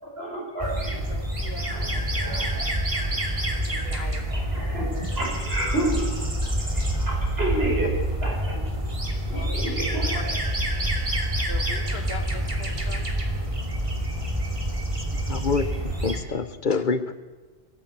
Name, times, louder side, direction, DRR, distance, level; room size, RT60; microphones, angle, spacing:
voice 1, 0.0-1.0 1.7-2.7 2.9-3.1 4.3-7.9 8.2-8.6 9.3-10.4, right 1 dB, 75° right, -1 dB, 5.9 m, -31 dB
sound 1, 0.6-16.2, right 1 dB, 30° right, 2.6 m, -27 dB
voice 2, 1.1-1.9 2.3-2.4 3.7-4.6 9.3-9.6 10.1-10.2 11.5-13.1 16.7-16.8, left 3 dB, 75° left, 8 dB, 1.9 m, -41 dB
voice 3, 15.3-17.1, left 4 dB, 55° left, 13 dB, 1.0 m, -26 dB
21.5 x 15.5 x 8.2 m, 1.3 s
omnidirectional pair, 1.0 m